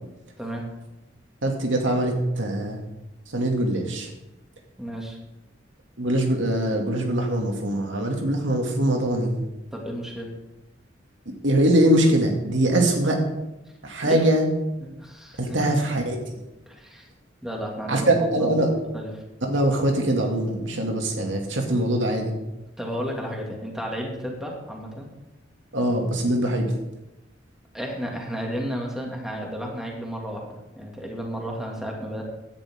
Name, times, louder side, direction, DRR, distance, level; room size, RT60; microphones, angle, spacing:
voice 1, 1.4-2.8 3.3-4.1 6.0-9.4 11.3-13.2 13.8-14.5 15.4-16.4 17.9-18.7 19.4-22.3 25.7-26.7, right 1 dB, 90° right, 2 dB, 2.5 m, -22 dB
voice 2, 4.8-5.2 9.7-10.3 14.0-14.2 14.8-15.6 16.7-17.1 17.4-18.5 18.9-19.2 22.8-25.1 27.7-32.2, equal, 5° right, -1 dB, 2.4 m, -33 dB
17.0 x 10.5 x 3.8 m, 0.94 s
head